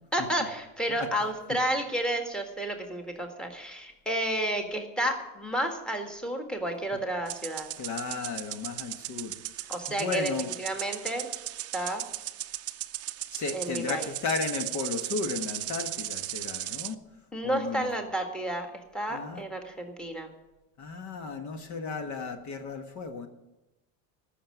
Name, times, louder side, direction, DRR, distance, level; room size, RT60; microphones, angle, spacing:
voice 1, 0.1-7.7 9.7-11.3 11.7-12.0 13.5-14.1 17.3-18.7 18.9-20.3, right 1 dB, ahead, 3 dB, 1.8 m, -31 dB
sound 1, 7.3-17.0, right 14 dB, 40° right, 0.6 m, -37 dB
voice 2, 7.8-10.5 13.3-17.0 17.4-17.9 19.1-19.4 20.8-23.3, left 4 dB, 45° left, 7 dB, 1.4 m, -34 dB
14.0 x 6.7 x 9.2 m, 0.99 s
cardioid pair, 135°, 39 cm